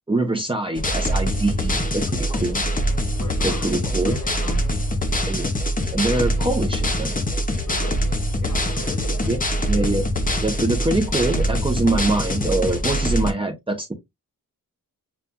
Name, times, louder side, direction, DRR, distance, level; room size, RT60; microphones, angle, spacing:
voice 1, 0.1-2.6 3.4-4.2 5.2-5.5 5.9-7.1 9.3-9.4 9.7-10.0 10.4-13.9, right 2 dB, 15° right, 0.9 m, -24 dB
sound 1, 0.7-13.3, equal, 25° left, 0.8 m, -23 dB
voice 2, 3.2-4.7 7.6-8.1 8.4-9.3, left 3 dB, 60° left, 1.1 m, -37 dB
7.0 x 2.4 x 2.3 m
wide cardioid pair, 120°, 34 cm